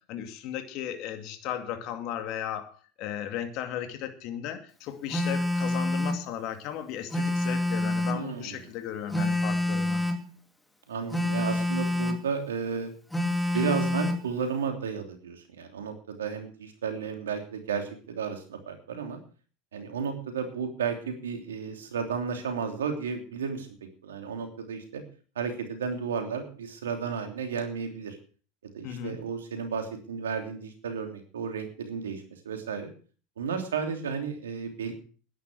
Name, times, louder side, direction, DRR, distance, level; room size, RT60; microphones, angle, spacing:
voice 1, 0.1-2.7 3.0-10.0 28.8-29.2, left 10 dB, 55° left, 7 dB, 2.2 m, -35 dB
Telephone, 5.1-6.3 7.1-8.3 9.1-10.3 11.1-12.3 13.1-14.3, left 1 dB, 5° left, 2.7 m, -27 dB
voice 2, 8.1-8.6 10.9-12.9 13.5-19.2 19.7-23.7 24.0-25.0 25.3-28.2 28.7-32.9 33.4-34.9, right 6 dB, 85° right, 6 dB, 3.0 m, -33 dB
12.5 x 10.5 x 6.2 m, 0.41 s
hypercardioid pair, 95°, 0 cm